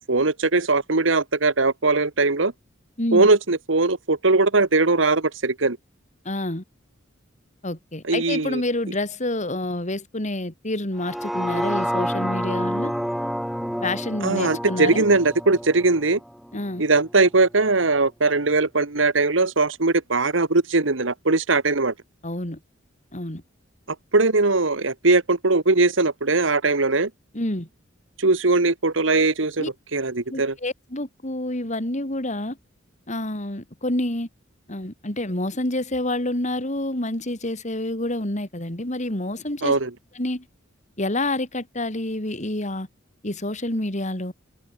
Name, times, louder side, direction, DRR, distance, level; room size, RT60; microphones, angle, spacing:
voice 1, 0.0-2.5 3.1-5.8 8.0-8.6 14.2-16.2 16.8-21.9 24.1-27.1 28.2-30.5 39.6-39.9, right 3 dB, 75° right, 1.6 m, -20 dB
voice 2, 6.3-6.6 7.6-12.9 13.8-15.0 16.5-16.8 22.2-22.6 23.1-23.4 27.3-27.7 29.6-29.7 30.3-32.6 33.1-34.3 34.7-39.7 40.2-40.5 41.0-42.9 43.2-44.3, left 1 dB, 40° left, 3.6 m, -28 dB
sound 1, 11.0-17.1 17.5-17.6, equal, ahead, 1.4 m, -29 dB
open air
head